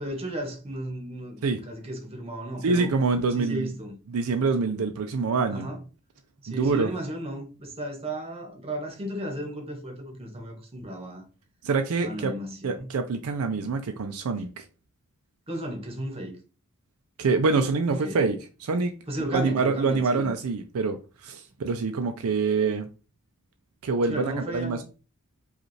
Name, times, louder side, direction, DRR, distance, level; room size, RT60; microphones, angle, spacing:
voice 1, 0.0-2.9 3.3-4.0 5.5-5.8 6.4-11.2 12.0-12.9 15.5-16.4 18.0-18.2 19.1-20.3 24.1-24.8, right 1 dB, 25° right, 1.1 m, -34 dB
voice 2, 2.6-3.7 4.1-5.7 6.5-6.9 11.6-12.3 12.6-14.6 17.2-18.9 19.3-22.9 23.8-24.8, right 4 dB, 70° right, 0.4 m, -25 dB
4.9 x 2.4 x 3.2 m
head